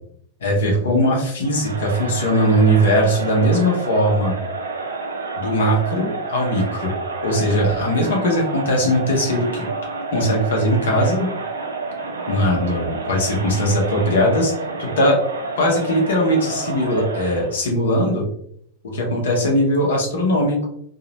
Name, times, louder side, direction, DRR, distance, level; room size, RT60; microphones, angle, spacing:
voice 1, 0.4-4.3 5.4-6.9 7.2-9.6 10.1-11.3 12.3-14.5 14.8-15.2 15.5-18.2 18.8-20.7, equal, 65° left, -1 dB, 0.8 m, -19 dB
Crowd, 1.4-17.6, right 3 dB, 75° right, 0.5 m, -29 dB
2.8 x 2.4 x 2.8 m, 0.68 s
figure-of-eight pair, 90°, 0 cm